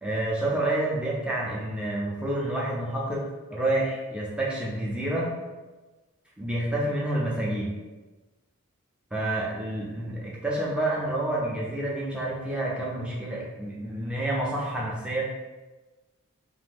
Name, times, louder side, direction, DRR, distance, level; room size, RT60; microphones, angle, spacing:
voice 1, 0.0-3.2 3.5-5.3 6.4-7.8 9.1-15.2, right 1 dB, 5° right, -5 dB, 0.4 m, -28 dB
2.4 x 2.1 x 3.3 m, 1.2 s
head